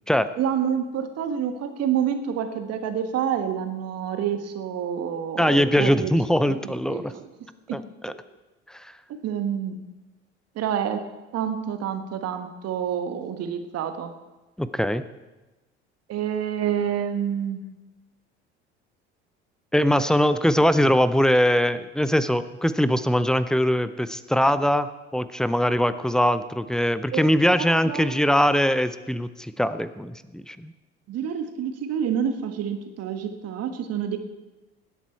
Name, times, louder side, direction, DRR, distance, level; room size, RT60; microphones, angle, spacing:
voice 1, 0.4-6.1 6.4-7.2 7.7-7.8 9.2-9.8 10.5-11.0 11.3-14.1 16.1-17.6 27.1-27.3 27.7-28.2 31.1-34.2, right 8 dB, 50° right, 8 dB, 1.5 m, -28 dB
voice 2, 5.4-7.1 7.7-8.1 8.7-8.9 14.6-15.0 19.7-30.7, equal, ahead, 13 dB, 0.6 m, -22 dB
19.5 x 8.2 x 4.6 m, 1.1 s
figure-of-eight pair, 65°, 33 cm